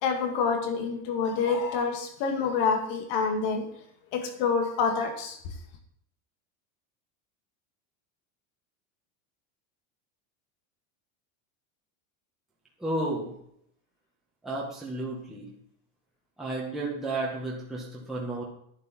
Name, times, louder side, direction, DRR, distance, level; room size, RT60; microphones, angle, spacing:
voice 1, 0.0-3.7 4.1-5.4, left 5 dB, 50° left, 5 dB, 2.3 m, -27 dB
voice 2, 12.8-13.3 14.4-15.5 16.4-18.4, right 2 dB, ahead, -6 dB, 1.7 m, -32 dB
11.0 x 9.9 x 4.6 m, 0.71 s
supercardioid pair, 170°, 43 cm